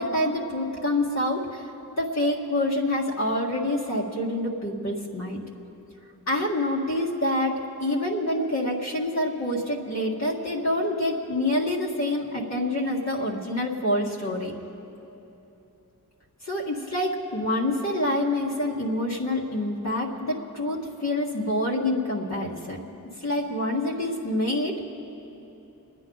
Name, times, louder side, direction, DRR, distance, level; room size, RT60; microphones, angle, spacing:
voice 1, 0.0-1.7 2.0-5.4 6.3-14.5 16.4-22.8 23.2-24.8, left 1 dB, 50° left, -4 dB, 1.9 m, -27 dB
28.5 x 9.9 x 3.9 m, 3.0 s
cardioid pair, 65°, 34 cm